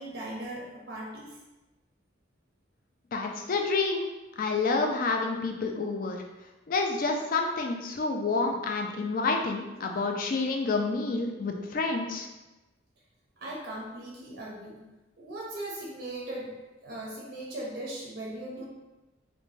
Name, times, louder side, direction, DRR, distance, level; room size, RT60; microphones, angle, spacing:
voice 1, 0.0-1.4 13.4-14.8 15.2-18.6, right 1 dB, 55° right, -3 dB, 0.5 m, -39 dB
voice 2, 3.1-4.1 4.4-6.2 6.7-12.3, left 3 dB, 45° left, 2 dB, 0.3 m, -28 dB
2.5 x 2.1 x 3.1 m, 1.1 s
head